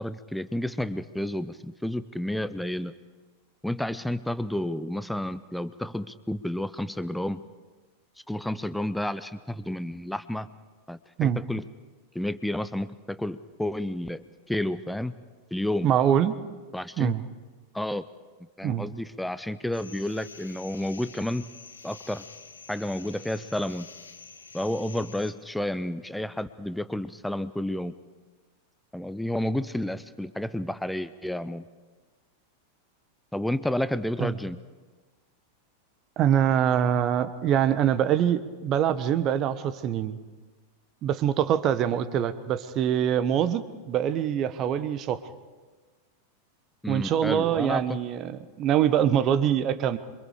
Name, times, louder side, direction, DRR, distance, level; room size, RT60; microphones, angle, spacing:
voice 1, 0.0-2.9 3.6-7.4 8.3-10.5 10.9-11.6 12.1-15.1 15.5-15.9 16.7-17.1 17.7-18.1 18.6-21.5 21.8-22.2 22.7-23.9 24.5-27.9 28.9-31.7 33.3-34.6 46.8-47.8, left 1 dB, ahead, 14 dB, 0.7 m, -31 dB
voice 2, 15.8-16.3 17.0-17.2 18.6-18.9 34.2-34.4 36.2-40.2 41.0-45.2 46.9-50.0, right 9 dB, 35° right, 14 dB, 1.2 m, -24 dB
sound 1, 19.7-25.3, left 5 dB, 75° left, 1.6 m, -48 dB
27.5 x 24.5 x 5.1 m, 1.3 s
figure-of-eight pair, 90°, 0 cm